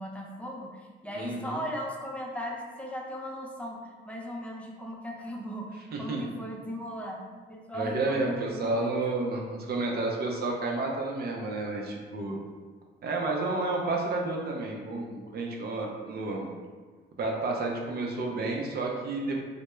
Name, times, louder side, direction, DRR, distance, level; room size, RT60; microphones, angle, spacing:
voice 1, 0.0-3.8 4.0-7.2 7.5-9.2, equal, 5° left, -2 dB, 0.4 m, -38 dB
voice 2, 1.1-1.6 5.9-6.2 7.7-12.4 13.0-16.5 17.2-19.4, right 2 dB, 55° right, 0 dB, 0.5 m, -31 dB
2.2 x 2.0 x 3.0 m, 1.4 s
cardioid pair, 90°, 20 cm